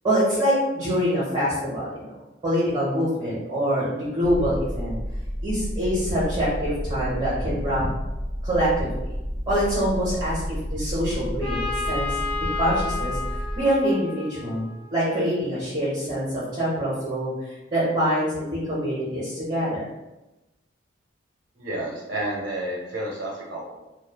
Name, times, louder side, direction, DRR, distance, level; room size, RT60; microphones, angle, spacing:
voice 1, 0.0-2.1 2.4-5.0 5.4-7.8 8.4-8.9 9.5-19.8, equal, 30° right, -9 dB, 0.7 m, -25 dB
sound 1, 4.2-13.6, equal, 35° left, 0.8 m, -31 dB
Trumpet, 11.4-15.1, left 4 dB, 10° left, 1.4 m, -32 dB
voice 2, 21.6-23.8, right 1 dB, 65° right, -3 dB, 0.5 m, -30 dB
3.0 x 2.1 x 2.2 m, 1.0 s
head